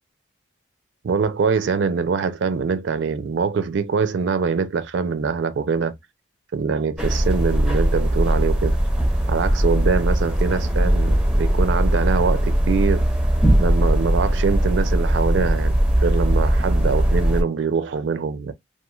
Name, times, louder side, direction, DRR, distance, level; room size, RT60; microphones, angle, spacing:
voice 1, 1.0-6.0 6.5-8.8 9.3-13.1 13.6-18.5, right 5 dB, 75° right, 0.4 m, -23 dB
sound 1, 7.0-17.4, right 1 dB, 5° right, 0.5 m, -19 dB
3.0 x 2.3 x 2.3 m
head